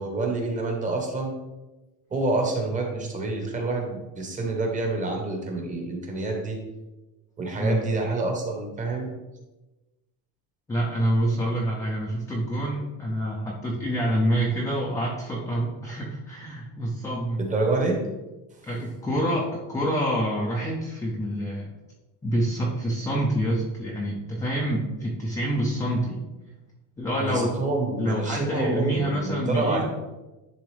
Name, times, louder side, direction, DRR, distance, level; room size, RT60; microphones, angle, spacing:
voice 1, 0.0-1.3 2.1-6.6 7.4-9.1 17.4-18.0 27.2-29.8, right 2 dB, 15° right, 1 dB, 0.9 m, -27 dB
voice 2, 7.6-7.9 10.7-17.4 18.6-21.7 22.2-26.2 27.0-27.5 28.0-29.8, right 1 dB, 10° left, -3 dB, 0.4 m, -27 dB
10.5 x 3.5 x 3.3 m, 1.1 s
cardioid pair, 170°, 44 cm